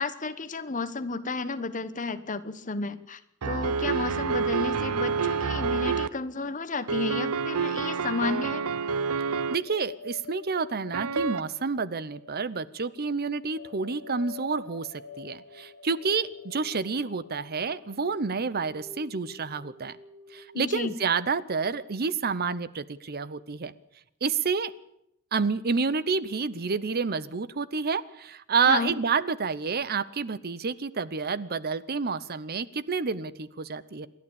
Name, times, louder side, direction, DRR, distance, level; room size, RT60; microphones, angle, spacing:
voice 1, 0.0-8.6 20.5-20.9 28.7-28.9, left 4 dB, 35° left, 12 dB, 1.2 m, -32 dB
sound 1, 3.4-6.1 6.9-9.5 10.9-11.4, right 5 dB, 90° right, 0.8 m, -28 dB
sound 2, 8.9-20.7, left 4 dB, 50° left, 6.1 m, -47 dB
voice 2, 9.5-20.0 20.3-23.7 24.2-24.7 25.3-34.1, right 5 dB, 45° right, 17 dB, 0.8 m, -29 dB
28.0 x 11.5 x 8.6 m, 0.78 s
head